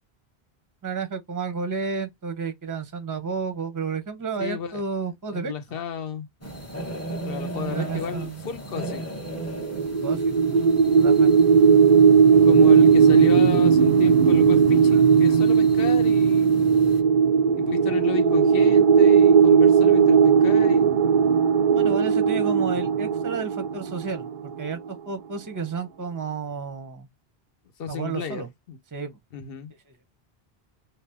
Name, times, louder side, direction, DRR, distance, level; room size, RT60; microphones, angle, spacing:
voice 1, 0.8-5.5 7.7-8.5 9.8-10.3 11.0-11.3 21.7-27.1 27.9-28.5 28.9-29.2 29.9-30.0, right 5 dB, 20° right, 0.6 m, -31 dB
voice 2, 4.4-4.8 5.3-6.3 7.2-9.0 12.4-16.7 17.5-20.9 27.8-28.8 29.3-29.7, left 7 dB, 65° left, 1.0 m, -33 dB
sound 1, 6.4-17.0, right 1 dB, 15° left, 0.7 m, -38 dB
sound 2, 9.5-24.6, right 6 dB, 60° right, 0.6 m, -17 dB
2.7 x 2.1 x 3.3 m
omnidirectional pair, 1.0 m